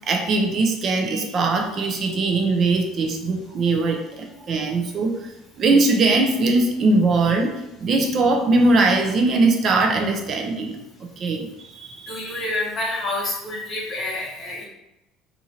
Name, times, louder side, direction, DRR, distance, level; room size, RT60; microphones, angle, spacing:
voice 1, 0.1-5.1 5.6-7.5 7.8-10.8 11.2-11.5 11.7-12.5, right 3 dB, 45° right, 3 dB, 0.6 m, -20 dB
voice 2, 12.1-14.6, left 2 dB, 45° left, -7 dB, 0.9 m, -28 dB
2.9 x 2.6 x 2.7 m, 0.93 s
supercardioid pair, 100°, 0 cm